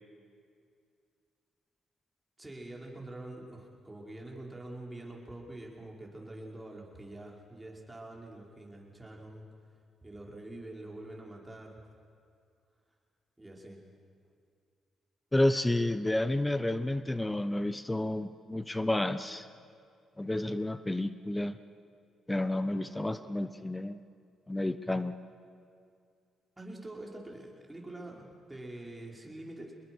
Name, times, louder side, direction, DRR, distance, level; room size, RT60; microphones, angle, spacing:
voice 1, 2.4-9.5 10.0-11.9 13.4-13.9 26.6-29.7, right 1 dB, 15° right, -1 dB, 5.4 m, -45 dB
voice 2, 15.3-19.4 20.2-21.6 22.3-24.0 24.5-25.1, left 1 dB, 15° left, 12 dB, 1.0 m, -30 dB
26.0 x 21.0 x 6.4 m, 2.3 s
supercardioid pair, 55°, 0 cm